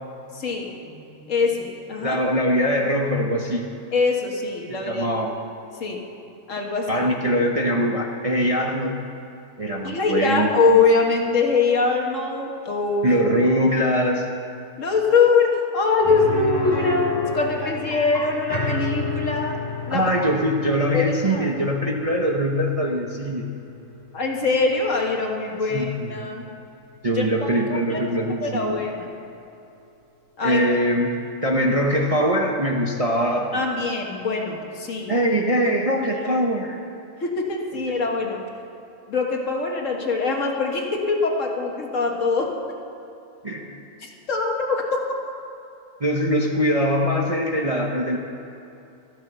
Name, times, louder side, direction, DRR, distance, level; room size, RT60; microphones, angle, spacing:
voice 1, 0.3-2.2 3.9-5.1 5.8-6.0 6.5-7.1 9.8-13.2 14.8-19.6 19.9-20.1 20.9-21.5 24.1-26.4 27.1-28.0 28.4-29.1 30.4-30.7 33.5-35.1 36.0-36.3 37.2-38.4 39.1-42.5 44.0-44.8, left 4 dB, 55° left, 1 dB, 1.8 m, -23 dB
voice 2, 2.0-3.7 4.8-5.3 6.9-9.0 9.6-10.5 13.0-14.3 19.9-23.5 25.7-26.1 27.0-28.8 30.4-31.1 31.4-33.5 35.1-36.8 43.4-43.7 46.0-48.2, equal, 30° right, 0 dB, 0.8 m, -22 dB
sound 1, 16.0-25.8 26.1-26.2 28.7-28.8, left 3 dB, 15° left, 1.7 m, -32 dB
13.5 x 11.5 x 6.8 m, 2.8 s
omnidirectional pair, 1.6 m